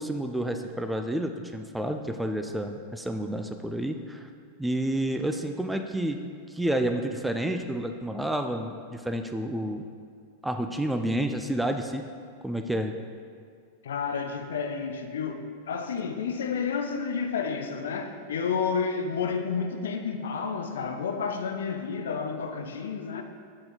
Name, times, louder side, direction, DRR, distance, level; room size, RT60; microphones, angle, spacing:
voice 1, 0.0-4.3 4.6-6.2 6.5-9.8 10.4-12.0 12.4-13.0, right 1 dB, 5° right, 6 dB, 0.3 m, -30 dB
voice 2, 13.8-23.2, left 5 dB, 65° left, 6 dB, 0.5 m, -30 dB
7.5 x 4.3 x 3.7 m, 2.3 s
figure-of-eight pair, 90°, 0 cm